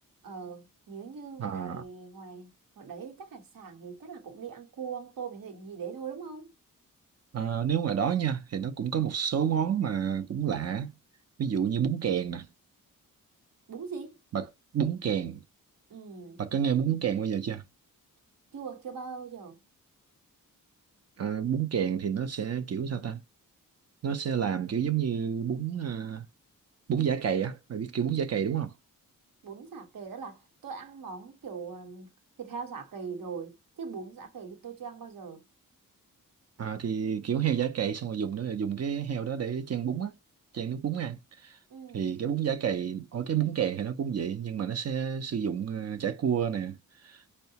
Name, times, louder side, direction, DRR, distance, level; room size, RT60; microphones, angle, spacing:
voice 1, 0.2-6.5 13.7-14.2 15.9-16.4 18.5-19.6 29.4-32.1 32.4-35.4 41.7-42.2, right 5 dB, 75° right, 1.1 m, -41 dB
voice 2, 1.4-1.8 7.3-10.9 11.4-12.5 14.3-14.5 14.7-15.4 16.4-17.6 21.2-23.2 24.0-26.3 26.9-28.7 36.6-40.2 40.5-41.6 41.9-46.8 47.0-47.2, right 8 dB, 45° right, 0.5 m, -29 dB
4.6 x 2.1 x 2.8 m
wide cardioid pair, 135°, 34 cm